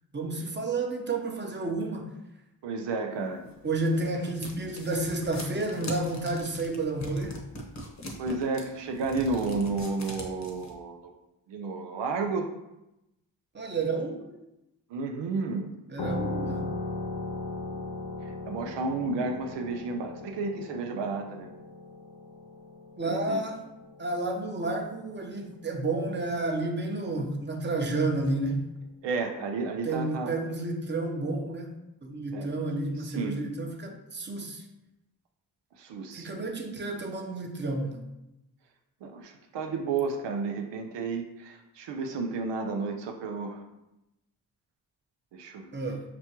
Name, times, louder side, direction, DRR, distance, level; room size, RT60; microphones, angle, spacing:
voice 1, 0.1-2.1 3.6-7.4 13.5-14.4 15.9-16.6 23.0-23.7 24.0-28.6 29.8-31.7 32.0-34.6 36.1-38.1 45.7-46.0, right 2 dB, 25° right, 2 dB, 0.8 m, -31 dB
voice 2, 2.6-3.4 8.2-11.1 11.5-12.5 14.9-15.8 18.2-21.5 23.0-23.4 29.0-30.3 32.3-32.5 33.0-33.4 35.8-36.3 39.0-43.6 45.3-45.7, right 4 dB, 85° right, 4 dB, 0.6 m, -32 dB
sound 1, 3.5-10.7, left 1 dB, 40° left, 1.0 m, -41 dB
sound 2, 16.0-25.2, left 2 dB, 75° left, 0.7 m, -38 dB
6.0 x 2.2 x 2.9 m, 0.91 s
cardioid pair, 50°, 42 cm